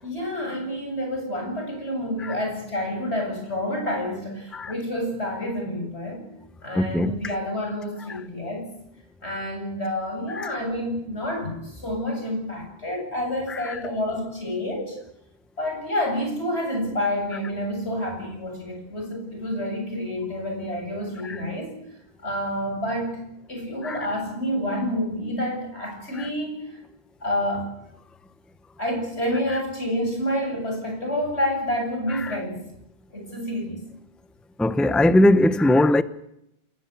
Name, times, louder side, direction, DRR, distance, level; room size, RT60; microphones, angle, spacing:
voice 1, 0.0-6.3 6.6-8.7 9.2-15.0 15.6-21.8 22.2-23.2 23.5-26.8 27.2-27.7 28.8-32.6 33.1-33.8, left 1 dB, 85° left, 8.3 m, -28 dB
voice 2, 6.7-7.1 10.3-10.5 13.5-13.8 21.2-21.4 23.8-24.0 26.2-26.3 32.2-32.3 34.6-36.0, left 1 dB, ahead, 0.7 m, -20 dB
29.0 x 16.0 x 8.5 m
omnidirectional pair, 1.1 m